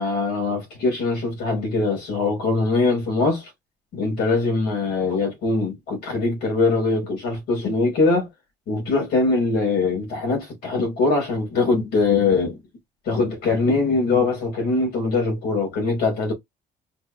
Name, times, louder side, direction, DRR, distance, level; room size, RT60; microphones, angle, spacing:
voice 1, 0.0-3.5 3.9-8.3 8.7-12.6 13.1-16.3, left 3 dB, 70° left, 3.5 m, -22 dB
5.2 x 2.8 x 2.9 m
cardioid pair, 110°, 17 cm